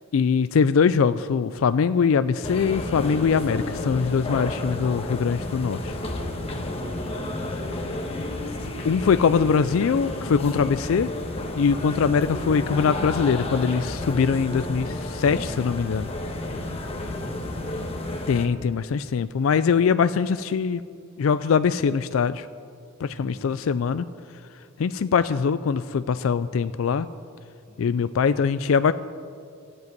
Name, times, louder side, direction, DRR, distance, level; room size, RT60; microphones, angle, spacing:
voice 1, 0.1-6.0 8.8-11.1 11.6-16.1 18.3-20.8 21.2-22.5 23.0-24.1 24.8-27.1 27.8-28.9, left 6 dB, 70° left, 13 dB, 0.4 m, -22 dB
sound 1, 2.4-18.5, left 1 dB, 30° left, 1.2 m, -31 dB
voice 2, 6.6-7.8 16.6-17.8 23.0-23.5 27.6-28.2, equal, 40° right, -1 dB, 3.3 m, -43 dB
13.5 x 7.8 x 9.4 m, 2.3 s
head